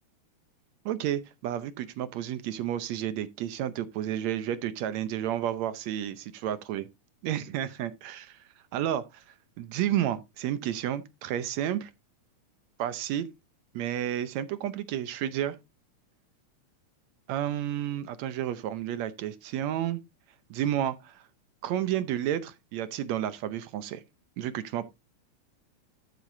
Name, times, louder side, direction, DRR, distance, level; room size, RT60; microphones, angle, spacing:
voice 1, 0.9-6.8 7.2-8.4 8.7-11.9 12.8-13.3 13.7-15.6 17.3-20.0 20.5-21.2 21.6-24.0 24.4-24.8, right 11 dB, 75° right, 1.9 m, -31 dB
12.5 x 7.9 x 2.6 m
omnidirectional pair, 3.4 m